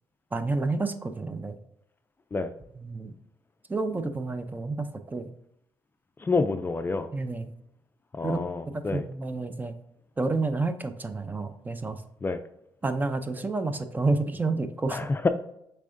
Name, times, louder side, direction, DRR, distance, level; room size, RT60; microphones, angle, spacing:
voice 1, 0.3-1.6 2.8-3.1 3.7-5.3 7.1-7.5 8.2-8.4 8.7-9.7 10.2-12.0 12.8-15.1, right 3 dB, 20° right, 9 dB, 0.6 m, -29 dB
voice 2, 6.2-7.1 8.1-9.0 12.2-12.4 14.9-15.3, left 3 dB, 25° left, 9 dB, 0.4 m, -27 dB
6.1 x 3.4 x 2.6 m, 0.78 s
supercardioid pair, 65°, 8 cm